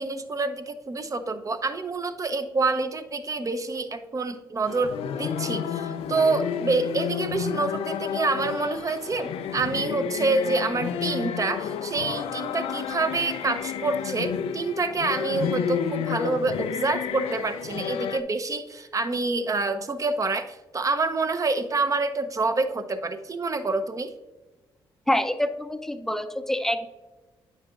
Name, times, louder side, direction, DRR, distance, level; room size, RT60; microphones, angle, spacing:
voice 1, 0.0-24.1, right 3 dB, 35° right, 8 dB, 0.7 m, -27 dB
sound 1, 4.7-18.2, left 8 dB, 75° left, 0.4 m, -31 dB
voice 2, 25.1-26.9, left 1 dB, 5° left, 9 dB, 0.6 m, -26 dB
8.9 x 6.5 x 2.5 m, 1.2 s
supercardioid pair, 55°, 10 cm